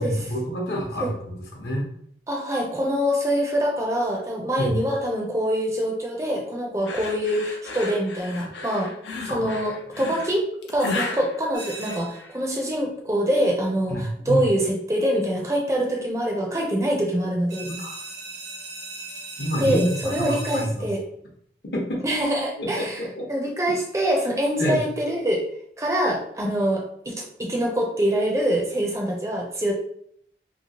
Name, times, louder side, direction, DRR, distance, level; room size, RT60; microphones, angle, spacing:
voice 1, 0.0-1.9 4.6-4.7 9.3-9.6 13.9-14.4 17.6-18.0 19.4-20.9 21.7-22.0 22.6-23.3 24.6-24.8, equal, 70° left, -2 dB, 0.9 m, -27 dB
voice 2, 2.3-8.9 9.2-17.7 19.6-21.0 22.0-23.0 23.3-25.4 25.8-29.7, equal, 15° right, 0 dB, 0.4 m, -25 dB
sound 1, 6.9-12.4, left 3 dB, 90° left, 0.5 m, -34 dB
sound 2, 11.5-12.3 17.5-20.6, right 2 dB, 90° right, 1.2 m, -37 dB
2.9 x 2.7 x 2.8 m, 0.68 s
head